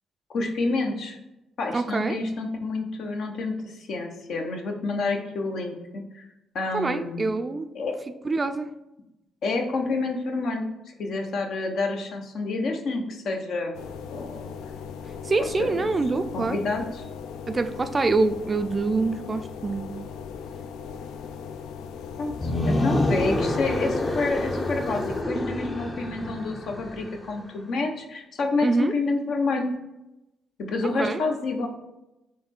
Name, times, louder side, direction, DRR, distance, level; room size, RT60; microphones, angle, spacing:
voice 1, 0.3-1.2 1.6-6.2 6.5-7.3 7.7-7.9 9.4-10.6 11.0-13.7 14.1-14.5 15.6-15.9 16.3-17.0 22.2-29.7 30.7-31.7, left 3 dB, 65° left, 3 dB, 0.8 m, -28 dB
voice 2, 1.7-2.2 6.7-7.7 8.3-8.7 15.2-16.6 17.5-19.9 28.6-28.9 31.0-31.2, right 3 dB, 30° right, 9 dB, 0.3 m, -25 dB
sound 1, 13.7-25.2, left 6 dB, 90° left, 0.3 m, -38 dB
sound 2, 22.3-27.3, left 1 dB, 25° left, 0.6 m, -27 dB
4.0 x 3.0 x 4.3 m, 0.94 s
cardioid pair, 90°, 0 cm